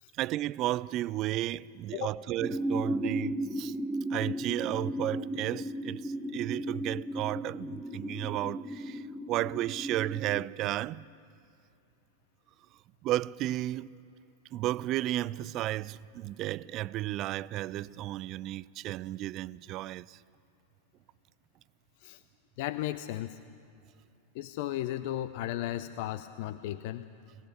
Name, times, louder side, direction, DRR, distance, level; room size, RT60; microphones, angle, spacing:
voice 1, 0.2-3.7 4.1-11.1 13.0-14.0 14.5-20.2, right 15 dB, 35° right, 0.4 m, -33 dB
sound 1, 2.4-10.5, right 1 dB, ahead, 0.8 m, -35 dB
voice 2, 22.6-23.4 24.3-27.0, left 13 dB, 50° left, 0.5 m, -35 dB
20.5 x 18.5 x 6.7 m
figure-of-eight pair, 90°, 0 cm